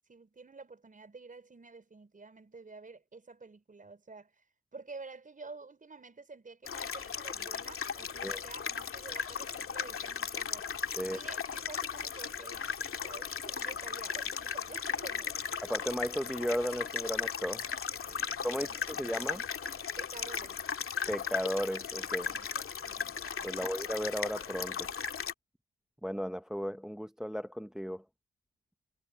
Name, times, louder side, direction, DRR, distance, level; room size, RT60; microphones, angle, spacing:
voice 1, 0.0-4.4 4.7-10.7 11.0-12.7 13.0-15.5 18.1-18.8 20.0-20.6 22.3-22.6 22.8-23.2 23.5-23.8, right 4 dB, 25° right, 5.1 m, -50 dB
sound 1, 6.7-25.3, left 6 dB, 45° left, 2.5 m, -37 dB
voice 2, 15.7-17.6 18.4-19.4 21.1-22.3 23.4-24.9 26.0-28.0, equal, ahead, 0.8 m, -35 dB
cardioid pair, 90°, 30 cm